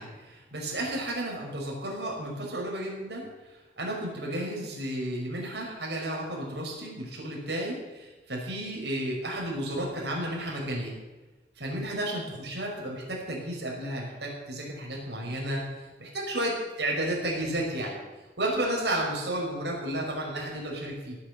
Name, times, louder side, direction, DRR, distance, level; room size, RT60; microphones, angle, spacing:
voice 1, 0.0-3.2 3.8-10.9 11.6-15.6 16.0-17.9 18.4-21.2, right 1 dB, 70° right, -2 dB, 5.7 m, -32 dB
17.0 x 9.7 x 8.4 m, 1.2 s
head